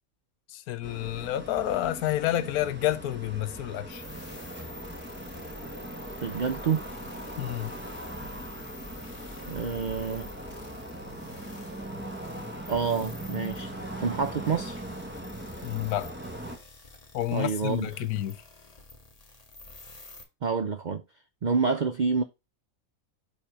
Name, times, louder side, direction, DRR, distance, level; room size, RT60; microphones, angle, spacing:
voice 1, 0.5-4.0 7.4-7.7 15.6-16.1 17.1-18.4, left 13 dB, 85° left, 1.2 m, -29 dB
sound 1, 0.8-16.6, right 1 dB, 10° right, 1.1 m, -40 dB
sound 2, 3.9-20.2, left 2 dB, 30° left, 1.1 m, -49 dB
voice 2, 6.2-6.8 9.5-10.3 12.7-13.7 14.0-14.8 17.3-17.9 20.4-21.0 21.4-22.2, right 5 dB, 70° right, 0.4 m, -28 dB
7.2 x 3.5 x 4.9 m
omnidirectional pair, 1.5 m